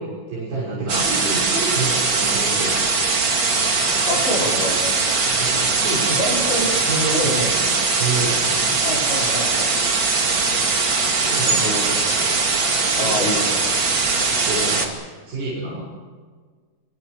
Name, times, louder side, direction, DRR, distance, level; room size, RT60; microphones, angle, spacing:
voice 1, 0.0-2.8 5.2-6.0 6.9-8.6 11.2-11.8 12.9-13.3 14.3-14.9 15.2-15.8, right 3 dB, 70° right, -7 dB, 8.0 m, -28 dB
sound 1, 0.9-14.9, right 4 dB, 35° right, 2.9 m, -20 dB
voice 2, 4.1-4.8 6.1-6.7 7.1-7.5 8.8-9.7 11.4-12.0 13.0-13.6, left 1 dB, 85° left, -2 dB, 6.8 m, -26 dB
27.0 x 25.0 x 5.0 m, 1.6 s
omnidirectional pair, 4.3 m